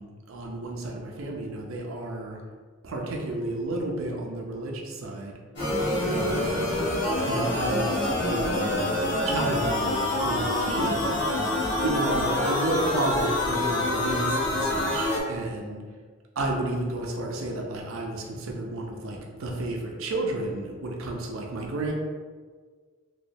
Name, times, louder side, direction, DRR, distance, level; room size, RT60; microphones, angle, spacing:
voice 1, 0.0-2.4 2.8-5.3 6.0-6.6 7.2-9.0 9.2-11.1 11.8-15.8 16.4-21.9, right 2 dB, 80° right, 0 dB, 0.5 m, -31 dB
sound 1, 5.6-15.2, left 1 dB, 55° left, 0.9 m, -26 dB
3.1 x 2.9 x 2.7 m, 1.5 s
head